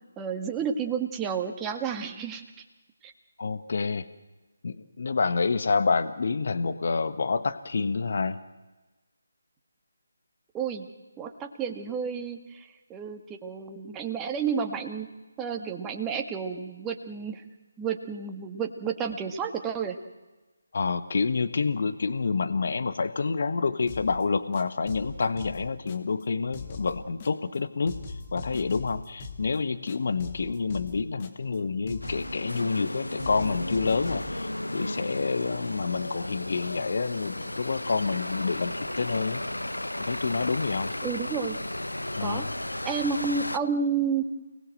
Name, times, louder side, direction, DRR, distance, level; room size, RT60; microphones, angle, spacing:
voice 1, 0.2-2.6 3.0-3.1 10.5-10.9 11.2-15.1 15.4-17.4 17.8-20.0 41.0-41.6 42.2-42.5 42.9-44.2, right 6 dB, 10° right, 4 dB, 1.7 m, -31 dB
voice 2, 3.4-4.1 4.6-8.4 20.7-27.9 28.3-39.5 40.1-40.9 42.2-42.5, left 4 dB, 50° left, 12 dB, 1.3 m, -28 dB
sound 1, 23.9-24.2 24.5-26.2 26.5-27.6 27.9-29.6 29.9-31.6 31.9-32.9 33.2-34.4, left 3 dB, 30° left, 2.5 m, -41 dB
sound 2, 32.0-43.6, left 1 dB, 90° left, 1.0 m, -34 dB
29.5 x 19.5 x 7.8 m, 1.2 s
figure-of-eight pair, 155°, 0 cm